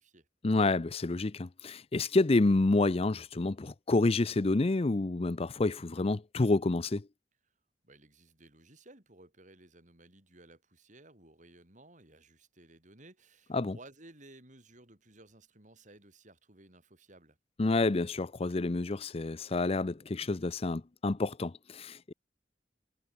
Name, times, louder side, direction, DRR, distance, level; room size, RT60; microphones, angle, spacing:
voice 1, 0.4-7.1 13.5-13.8 17.6-22.1, left 2 dB, 35° left, 0.6 m, -28 dB
voice 2, 7.8-17.4, right 2 dB, 45° right, 5.7 m, -57 dB
head